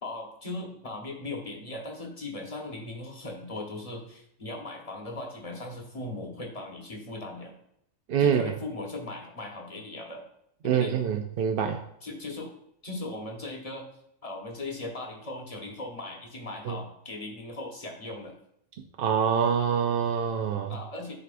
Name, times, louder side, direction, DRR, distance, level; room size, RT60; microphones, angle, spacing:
voice 1, 0.0-7.5 8.2-10.2 10.6-10.9 12.0-12.5 12.8-13.9 14.2-18.4 20.7-21.1, left 2 dB, 30° left, 1 dB, 1.2 m, -38 dB
voice 2, 8.1-8.5 10.6-11.8 16.7-16.8 19.0-20.8, right 7 dB, 60° right, 4 dB, 0.6 m, -25 dB
11.0 x 4.7 x 2.5 m, 0.74 s
omnidirectional pair, 1.4 m